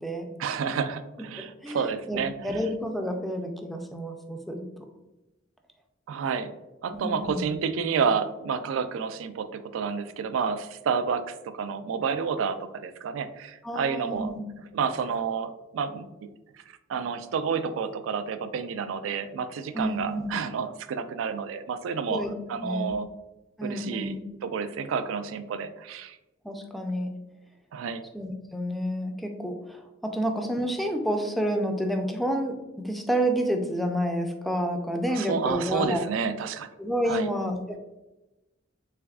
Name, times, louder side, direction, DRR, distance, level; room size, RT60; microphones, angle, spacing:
voice 1, 0.4-2.3 6.1-6.5 6.8-14.3 14.7-16.0 16.9-23.1 23.6-26.2 27.7-28.0 35.1-36.7 37.1-37.3, right 6 dB, 85° right, 10 dB, 0.3 m, -30 dB
voice 2, 1.4-1.8 2.1-4.7 6.9-7.4 13.6-14.4 19.7-20.3 22.1-22.3 22.6-23.0 23.6-24.2 26.4-27.1 28.1-36.0 36.8-37.8, equal, ahead, 4 dB, 0.3 m, -29 dB
3.3 x 3.3 x 2.3 m, 1.0 s
head